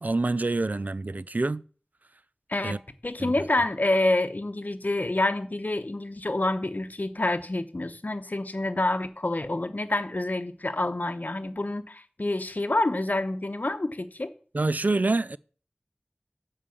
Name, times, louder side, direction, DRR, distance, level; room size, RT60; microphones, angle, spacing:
voice 1, 0.0-1.6 2.6-2.8 3.2-3.3 14.5-15.4, right 2 dB, 55° right, 0.3 m, -26 dB
voice 2, 2.5-14.3, left 2 dB, 55° left, 0.9 m, -28 dB
7.6 x 4.8 x 7.1 m
wide cardioid pair, 40°, 3 cm